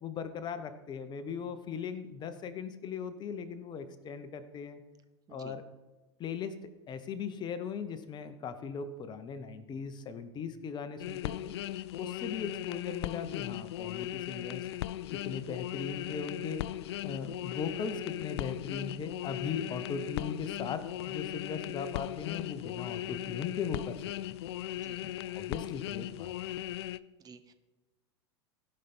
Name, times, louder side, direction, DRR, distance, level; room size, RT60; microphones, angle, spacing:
voice 1, 0.0-4.8 5.3-5.6 6.2-6.5 6.9-11.5 12.0-14.7 15.1-23.9 25.0-26.3, left 6 dB, 30° left, 10 dB, 1.0 m, -39 dB
sound 1, 11.0-27.0, left 14 dB, 60° left, 0.4 m, -38 dB
voice 2, 27.2-27.5, right 6 dB, 25° right, 10 dB, 0.8 m, -52 dB
16.5 x 5.6 x 4.4 m, 1.2 s
hypercardioid pair, 95°, 15 cm